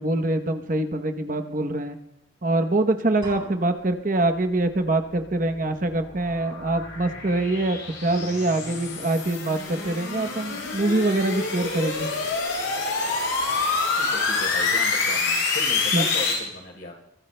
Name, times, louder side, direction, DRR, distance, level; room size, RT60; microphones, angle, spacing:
voice 1, 0.0-2.0 2.4-12.1 15.9-16.0, right 2 dB, 40° right, 7 dB, 0.9 m, -24 dB
sound 1, 3.2-4.2, right 2 dB, 25° right, 3.6 m, -43 dB
sound 2, 5.0-16.3, left 4 dB, 85° left, 6.4 m, -27 dB
voice 2, 14.0-17.0, left 1 dB, 55° left, 0 dB, 3.7 m, -36 dB
24.0 x 21.0 x 2.2 m, 0.83 s
head